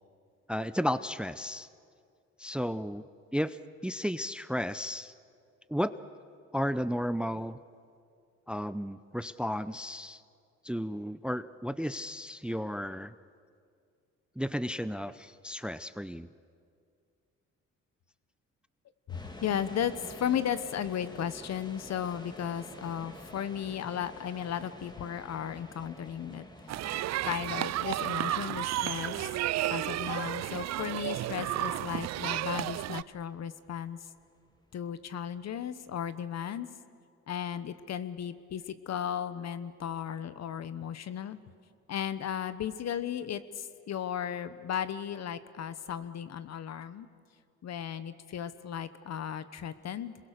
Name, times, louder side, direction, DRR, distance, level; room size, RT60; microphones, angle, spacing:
voice 1, 0.5-1.7 2.4-3.0 3.3-3.6 3.8-5.1 5.7-6.0 6.5-7.6 8.5-10.2 10.6-13.1 14.4-16.3, equal, 5° right, 15 dB, 0.6 m, -33 dB
voice 2, 19.1-26.5 27.2-29.3 29.7-34.0 34.7-36.7 37.3-41.4 41.9-47.1 47.6-50.2, left 9 dB, 60° left, 13 dB, 1.1 m, -35 dB
sound 1, 19.1-36.1, left 1 dB, 15° left, 2.3 m, -50 dB
sound 2, 26.7-33.0, right 14 dB, 60° right, 0.5 m, -32 dB
27.0 x 22.0 x 6.6 m, 2.2 s
cardioid pair, 90°, 30 cm